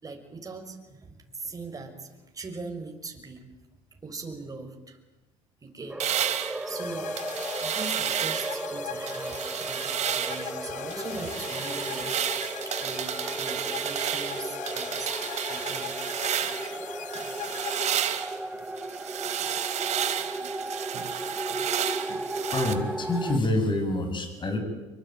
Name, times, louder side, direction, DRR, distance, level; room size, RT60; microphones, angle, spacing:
voice 1, 0.0-3.4 4.0-5.0 5.6-6.1 6.6-7.1 7.6-12.2 12.6-15.2 15.5-16.0, right 3 dB, 25° right, 3 dB, 6.0 m, -41 dB
sound 1, 5.9-23.4, right 2 dB, 10° right, 1.5 m, -35 dB
sound 2, 6.0-8.7 9.1-10.5 10.9-16.8 17.1-22.8, right 10 dB, 55° right, 2.7 m, -32 dB
sound 3, 6.7-18.6, left 14 dB, 60° left, 0.9 m, -40 dB
voice 2, 22.4-24.6, left 2 dB, 35° left, 7 dB, 7.6 m, -27 dB
26.0 x 24.0 x 9.2 m, 1.1 s
supercardioid pair, 85°, 14 cm